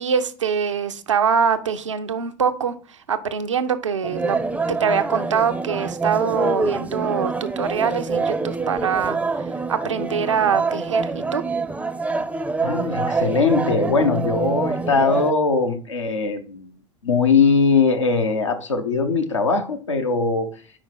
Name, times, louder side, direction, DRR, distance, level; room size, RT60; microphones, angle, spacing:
voice 1, 0.0-4.4 4.7-9.2 9.7-11.4, right 7 dB, 80° right, 9 dB, 0.6 m, -23 dB
sound 1, 4.0-15.3, right 4 dB, 10° right, 0.5 m, -26 dB
voice 2, 12.6-16.7 17.0-20.5, left 4 dB, 85° left, 5 dB, 0.9 m, -20 dB
5.0 x 5.0 x 5.4 m, 0.42 s
figure-of-eight pair, 75°, 15 cm